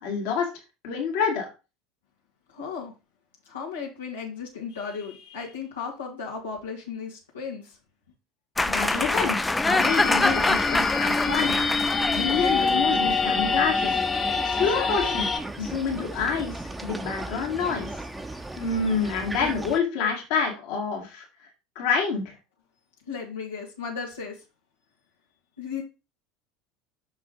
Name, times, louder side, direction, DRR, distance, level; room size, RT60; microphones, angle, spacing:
voice 1, 0.0-0.5 0.8-1.5 8.7-11.5 12.1-13.9 14.5-15.3 15.6-16.6 16.8-17.9 18.6-21.2 21.8-22.3, left 5 dB, 60° left, 1 dB, 2.1 m, -27 dB
voice 2, 2.5-2.9 3.5-7.8 23.1-24.4 25.6-25.8, left 5 dB, 80° left, -5 dB, 2.0 m, -35 dB
sound 1, 8.6-14.4, left 2 dB, 10° left, 0.5 m, -26 dB
sound 2, 9.8-15.4, left 4 dB, 25° left, 1.0 m, -25 dB
sound 3, 13.8-19.8, right 2 dB, 10° right, 0.9 m, -37 dB
6.1 x 5.5 x 3.8 m, 0.28 s
figure-of-eight pair, 70°, 0 cm